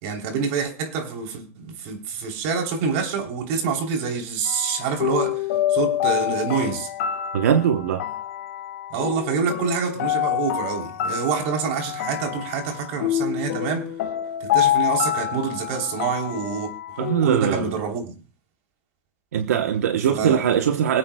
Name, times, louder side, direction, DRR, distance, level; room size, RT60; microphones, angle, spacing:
voice 1, 0.0-6.9 8.9-13.9 14.4-16.7 17.2-18.1 20.1-20.4, right 6 dB, 55° right, 3.3 m, -27 dB
sound 1, 4.5-17.8, left 11 dB, 70° left, 1.5 m, -27 dB
voice 2, 7.3-8.1 17.0-17.7 19.3-21.0, right 8 dB, 85° right, 1.0 m, -21 dB
24.0 x 8.9 x 2.3 m
supercardioid pair, 135°, 8 cm